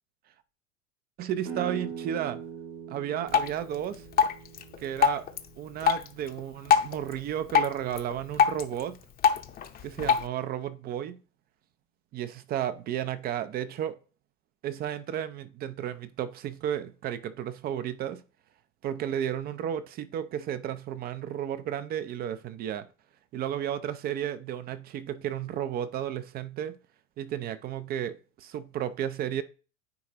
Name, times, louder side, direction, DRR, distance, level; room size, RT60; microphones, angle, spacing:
voice 1, 1.2-2.4 2.9-4.1 4.8-5.3 5.6-9.0 9.8-11.2 12.1-14.0 14.6-18.2 18.8-22.9 23.3-26.8 27.2-29.4, right 10 dB, 25° right, 0.4 m, -33 dB
sound 1, 1.4-7.0, right 6 dB, 70° right, 2.2 m, -42 dB
Drip, 3.3-10.3, left 7 dB, 25° left, 0.7 m, -27 dB
9.5 x 3.9 x 2.9 m
hypercardioid pair, 110°, 39 cm